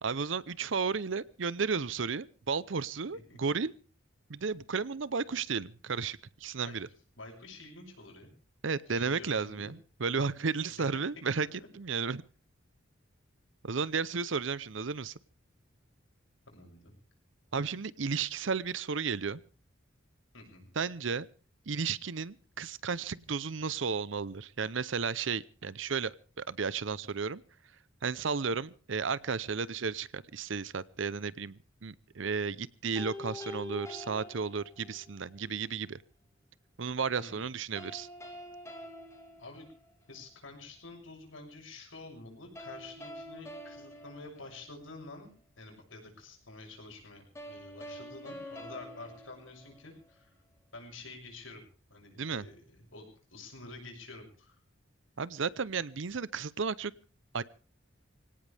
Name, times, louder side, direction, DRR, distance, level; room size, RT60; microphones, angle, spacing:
voice 1, 0.0-3.7 4.3-6.9 8.6-11.5 11.8-12.2 13.6-15.1 17.5-19.4 20.8-21.3 21.7-27.4 28.0-36.0 36.8-38.1 52.2-52.5 55.2-56.9 57.3-57.4, right 5 dB, 70° right, 19 dB, 0.7 m, -33 dB
voice 2, 2.9-3.4 6.6-6.8 7.2-8.3 8.9-9.7 10.9-11.1 11.4-11.7 16.5-16.9 20.3-20.7 37.2-37.5 39.4-39.7 40.1-45.3 45.6-50.3 50.7-51.6 51.9-54.6, left 2 dB, 85° left, 1 dB, 7.2 m, -49 dB
sound 1, 33.0-35.1 37.8-40.2 42.6-45.1 47.4-50.2, left 1 dB, 15° left, 3.0 m, -46 dB
23.5 x 17.5 x 3.5 m, 0.38 s
head